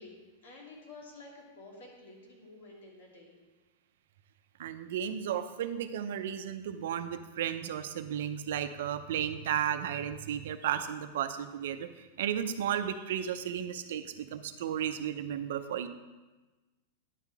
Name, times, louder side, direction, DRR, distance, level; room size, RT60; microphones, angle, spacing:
voice 1, 0.0-3.4, left 2 dB, 85° left, -2 dB, 2.7 m, -51 dB
voice 2, 4.6-15.9, right 9 dB, 65° right, 9 dB, 0.6 m, -34 dB
10.0 x 5.7 x 4.7 m, 1.2 s
supercardioid pair, 175°, 0 cm